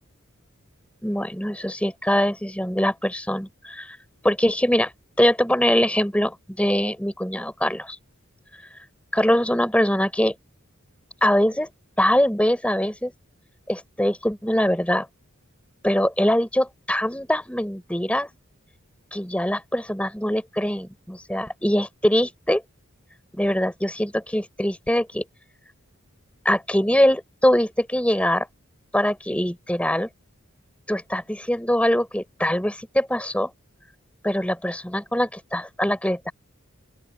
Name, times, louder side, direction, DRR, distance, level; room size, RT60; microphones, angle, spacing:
voice 1, 1.0-4.0 4.2-4.9 5.2-8.0 9.1-10.4 11.2-11.7 12.0-13.1 13.7-15.1 15.8-18.3 19.1-22.6 23.3-25.2 26.5-28.5 28.9-30.1 30.9-33.5 34.2-36.3, equal, 5° left, 7.0 m, -23 dB
open air
head